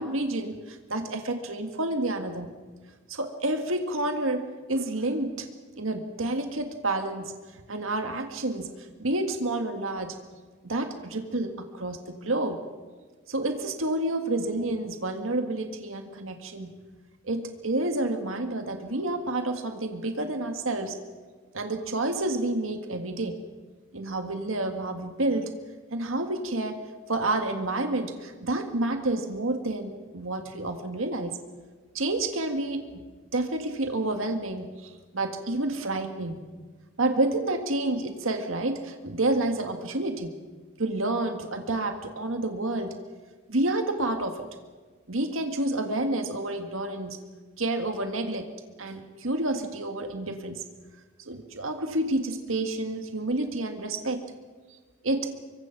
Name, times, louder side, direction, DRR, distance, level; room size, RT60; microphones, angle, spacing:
voice 1, 0.0-2.5 3.1-5.5 5.8-7.3 7.7-8.7 9.0-10.1 10.6-12.6 13.3-16.7 17.2-21.0 21.5-23.4 23.9-25.5 25.9-26.8 27.1-31.4 31.9-33.0 33.3-36.4 37.0-40.3 40.8-43.0 43.5-44.5 45.1-47.2 47.6-48.5 48.8-50.6 51.3-54.2 55.0-55.3, right 2 dB, 85° right, 5 dB, 1.9 m, -29 dB
25.5 x 23.0 x 6.0 m, 1.4 s
head